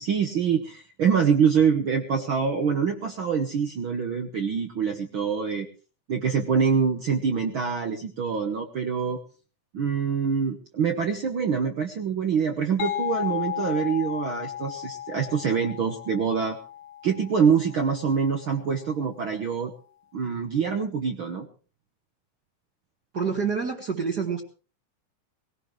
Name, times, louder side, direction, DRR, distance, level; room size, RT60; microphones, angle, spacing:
voice 1, 0.0-5.7 6.1-9.2 9.7-16.6 17.0-19.7 20.1-21.5, right 6 dB, 55° right, 4 dB, 1.5 m, -25 dB
sound 1, 12.8-18.3, left 10 dB, 70° left, 2.0 m, -34 dB
voice 2, 23.1-24.4, right 6 dB, 35° right, 1 dB, 2.1 m, -27 dB
19.0 x 17.5 x 3.2 m, 0.37 s
omnidirectional pair, 3.5 m